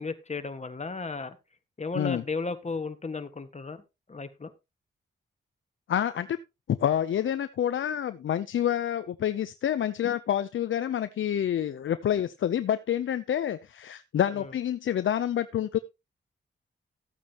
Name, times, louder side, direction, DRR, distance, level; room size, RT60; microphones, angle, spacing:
voice 1, 0.0-1.4 1.8-3.8 4.1-4.5 14.3-14.5, left 4 dB, 35° left, 9 dB, 1.7 m, -34 dB
voice 2, 5.9-6.4 6.7-15.8, left 10 dB, 70° left, 12 dB, 0.6 m, -28 dB
14.0 x 8.5 x 2.9 m, 0.25 s
cardioid pair, 50°, 21 cm